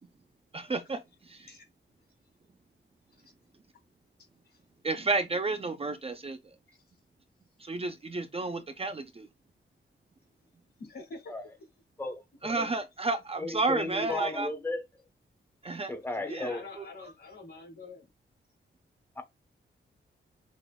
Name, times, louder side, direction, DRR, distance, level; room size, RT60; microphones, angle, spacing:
voice 1, 0.5-1.0 4.8-6.4 7.6-9.3 12.4-14.5 15.6-15.9 16.3-16.5, right 3 dB, 30° right, 0.5 m, -31 dB
voice 2, 10.8-11.3 14.1-14.2 16.1-18.1, left 3 dB, 55° left, 3.0 m, -46 dB
voice 3, 12.0-12.6 13.4-14.8 15.9-16.6 19.2-19.3, left 2 dB, 10° left, 1.0 m, -35 dB
6.1 x 2.4 x 2.3 m
wide cardioid pair, 115°, 20 cm